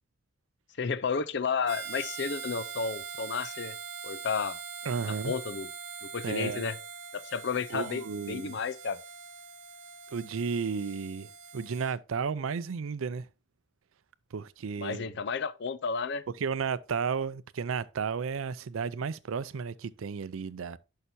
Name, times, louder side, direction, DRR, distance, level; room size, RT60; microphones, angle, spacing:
voice 1, 0.8-3.7 4.0-4.6 5.2-5.7 6.0-6.8 7.1-9.0 14.8-16.2, left 5 dB, 60° left, 0.5 m, -32 dB
Harmonica, 1.7-11.9, right 6 dB, 65° right, 0.8 m, -43 dB
voice 2, 4.8-5.3 6.2-6.7 7.7-8.6 10.1-13.3 14.3-15.1 16.4-20.8, right 5 dB, 85° right, 0.5 m, -33 dB
11.0 x 5.7 x 2.7 m
head